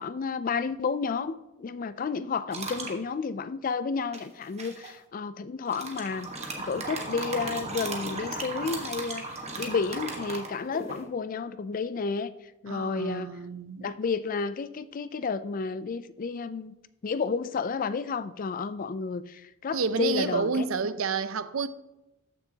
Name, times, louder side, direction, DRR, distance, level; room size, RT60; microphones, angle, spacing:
voice 1, 0.0-6.3 6.6-13.3 13.8-16.7 17.0-20.6, left 5 dB, 40° left, 0.4 m, -31 dB
sound 1, 2.5-3.0 4.1-4.9 5.7-11.0, right 2 dB, 30° right, 1.3 m, -36 dB
voice 2, 12.7-13.9 19.7-21.7, right 5 dB, 70° right, 0.5 m, -29 dB
14.0 x 6.2 x 2.8 m
head